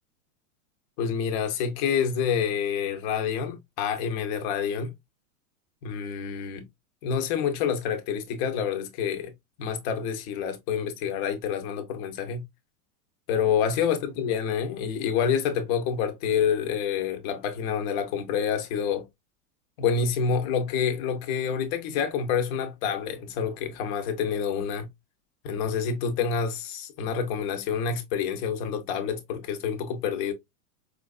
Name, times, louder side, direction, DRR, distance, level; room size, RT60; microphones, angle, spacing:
voice 1, 1.0-4.9 5.8-6.6 7.0-9.3 9.6-12.5 13.3-19.1 19.8-24.9 25.4-30.3, left 7 dB, 35° left, 0.7 m, -28 dB
4.5 x 2.3 x 2.3 m
supercardioid pair, 155°, 45 cm